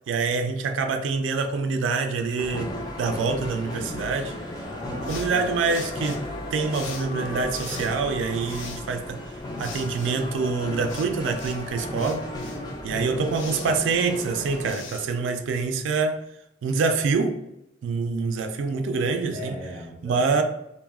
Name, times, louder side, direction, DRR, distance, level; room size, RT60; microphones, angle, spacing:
voice 1, 0.1-4.3 5.0-9.3 9.6-12.3 12.8-16.2 16.6-17.4 17.8-19.6 20.0-20.4, right 4 dB, 80° right, 0.3 m, -26 dB
sound 1, 2.4-14.7, left 1 dB, 20° left, 0.4 m, -35 dB
voice 2, 4.6-5.9 12.5-13.7 19.3-20.4, equal, 45° left, 0.9 m, -38 dB
sound 2, 5.0-16.0, left 5 dB, 90° left, 0.4 m, -44 dB
2.2 x 2.0 x 3.4 m
head